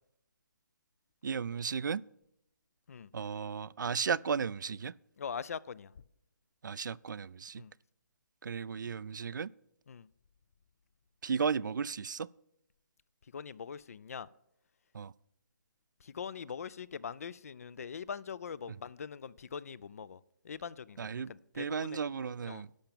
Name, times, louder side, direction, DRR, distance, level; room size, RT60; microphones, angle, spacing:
voice 1, 1.2-2.0 3.1-4.9 6.6-7.6 8.4-9.5 11.2-12.3 14.9-15.1 18.7-18.8 21.0-22.7, right 6 dB, 85° right, 0.4 m, -35 dB
voice 2, 5.2-5.9 7.6-7.7 9.9-10.1 13.3-14.3 16.0-22.0 22.5-22.7, left 6 dB, 50° left, 0.4 m, -42 dB
11.5 x 5.8 x 6.8 m
hypercardioid pair, 165°, 10 cm